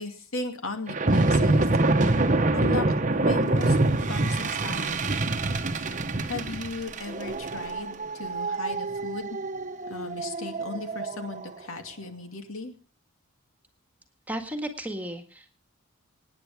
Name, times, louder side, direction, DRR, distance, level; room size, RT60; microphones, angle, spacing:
voice 1, 0.0-1.6 2.5-5.1 6.3-9.4 9.9-12.7, left 3 dB, 75° left, 5 dB, 2.5 m, -37 dB
sound 1, 0.9-11.5, right 2 dB, 35° right, 1.0 m, -25 dB
voice 2, 14.3-15.6, right 1 dB, 10° right, 5 dB, 1.8 m, -34 dB
26.5 x 9.7 x 3.5 m, 0.38 s
head